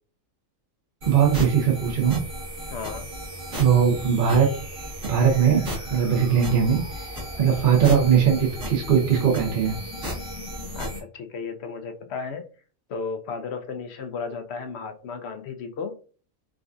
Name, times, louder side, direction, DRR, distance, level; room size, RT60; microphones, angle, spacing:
voice 1, 1.0-2.2 3.6-4.5 5.0-6.8 7.4-9.8, right 7 dB, 45° right, -1 dB, 0.8 m, -20 dB
sound 1, 1.0-11.0, equal, 70° right, 1.8 m, -35 dB
voice 2, 2.7-3.1 10.7-12.4 12.9-16.0, left 5 dB, 65° left, 7 dB, 0.7 m, -34 dB
4.9 x 2.4 x 2.5 m, 0.39 s
omnidirectional pair, 1.4 m